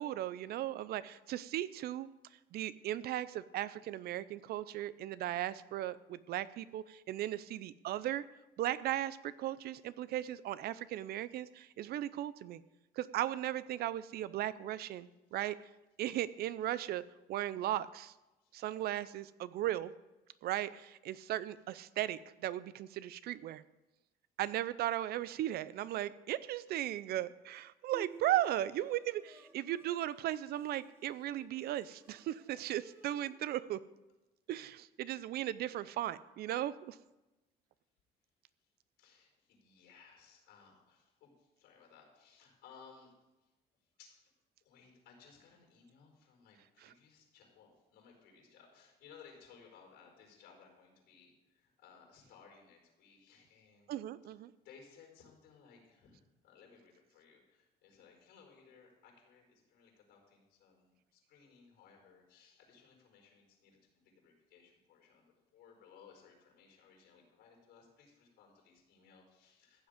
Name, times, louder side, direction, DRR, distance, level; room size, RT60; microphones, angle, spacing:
voice 1, 0.0-2.1 2.5-8.2 8.6-12.6 13.0-15.6 16.0-17.0 17.3-18.1 18.5-19.9 20.4-23.6 24.4-33.8 34.5-37.0 53.9-54.5, right 13 dB, 70° right, 17 dB, 0.6 m, -37 dB
Bowed string instrument, 27.9-33.4, right 3 dB, 15° right, 1.7 m, -56 dB
voice 2, 39.0-43.1 44.0-44.3 44.6-53.9 54.6-63.8 64.0-69.9, left 6 dB, 85° left, 1 dB, 4.8 m, -61 dB
15.0 x 8.0 x 5.1 m, 1.0 s
cardioid pair, 110°, 17 cm